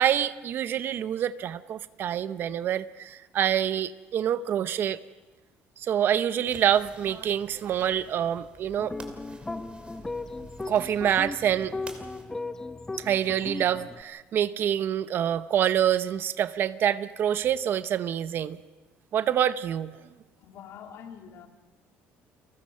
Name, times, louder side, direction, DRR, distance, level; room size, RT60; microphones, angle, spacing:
voice 1, 0.0-5.0 5.8-8.9 10.7-11.7 13.0-18.6 19.1-19.9, right 10 dB, 50° right, 0.7 m, -26 dB
sound 1, 6.4-12.2, right 3 dB, 25° right, 2.7 m, -49 dB
sound 2, 8.8-14.0, left 3 dB, 10° left, 0.8 m, -37 dB
voice 2, 20.4-21.5, left 8 dB, 60° left, 2.1 m, -45 dB
30.0 x 19.0 x 5.5 m
cardioid pair, 125°, 5 cm